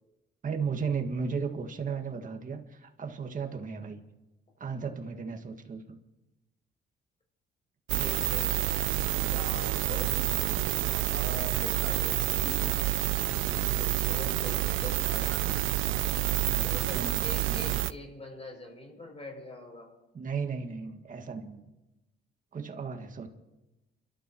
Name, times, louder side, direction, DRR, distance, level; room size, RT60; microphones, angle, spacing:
voice 1, 0.4-4.0 4.6-6.0 16.4-17.8 20.1-21.6 22.5-23.3, right 5 dB, 40° right, 5 dB, 1.8 m, -35 dB
voice 2, 7.9-12.8 13.4-15.7 16.6-19.9, left 2 dB, 30° left, 0 dB, 6.5 m, -44 dB
sound 1, 7.9-17.9, right 17 dB, 85° right, 0.4 m, -28 dB
29.5 x 12.5 x 3.0 m, 1.0 s
cardioid pair, 90°, 20 cm